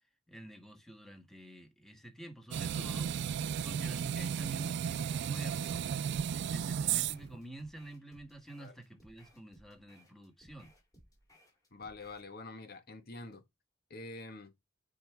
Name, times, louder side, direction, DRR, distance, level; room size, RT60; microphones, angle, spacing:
voice 1, 0.3-3.1 3.6-5.8 6.3-10.7, right 1 dB, ahead, 1.6 m, -49 dB
sound 1, 2.5-7.4, right 8 dB, 60° right, 0.3 m, -34 dB
sound 2, 6.7-12.3, equal, 20° left, 3.2 m, -63 dB
voice 2, 11.7-13.4 13.9-14.5, left 2 dB, 55° left, 1.5 m, -46 dB
8.5 x 4.8 x 3.4 m
head